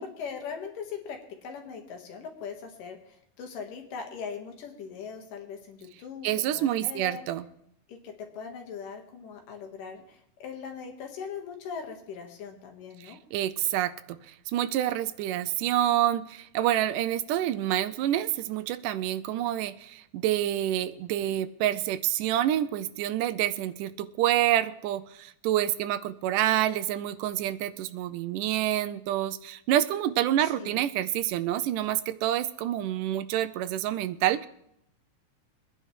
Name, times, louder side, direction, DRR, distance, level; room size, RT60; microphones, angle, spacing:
voice 1, 0.0-7.2 7.9-13.2 30.4-30.8, left 6 dB, 85° left, 3 dB, 3.3 m, -40 dB
voice 2, 6.2-7.5 13.0-14.2 14.5-34.5, right 12 dB, 85° right, 12 dB, 2.1 m, -27 dB
23.5 x 9.9 x 3.2 m, 0.76 s
omnidirectional pair, 3.7 m